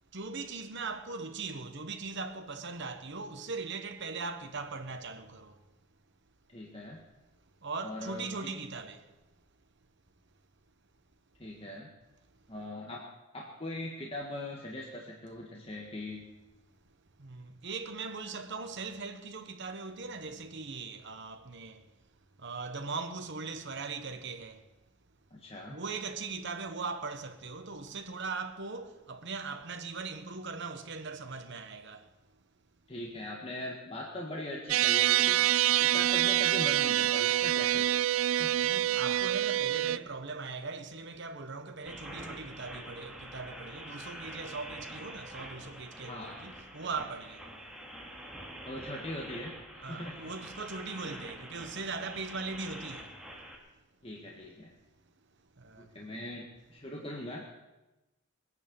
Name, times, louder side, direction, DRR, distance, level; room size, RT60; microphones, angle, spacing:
voice 1, 0.1-5.6 7.6-9.1 17.2-21.9 22.4-24.6 25.7-32.1 38.6-47.5 49.8-53.2 55.6-55.9, right 4 dB, 60° right, 1.3 m, -40 dB
voice 2, 6.5-7.0 7.8-8.5 11.4-11.9 12.5-13.0 13.3-16.2 25.3-25.8 32.9-35.5 35.8-37.9 38.4-38.7 46.1-46.4 48.7-50.2 51.0-51.2 54.0-54.7 55.8-57.4, left 1 dB, 30° left, 1.8 m, -41 dB
sound 1, 34.7-40.0, right 13 dB, 85° right, 0.5 m, -26 dB
sound 2, 41.9-53.6, right 1 dB, 5° right, 2.5 m, -46 dB
21.0 x 9.7 x 7.1 m
head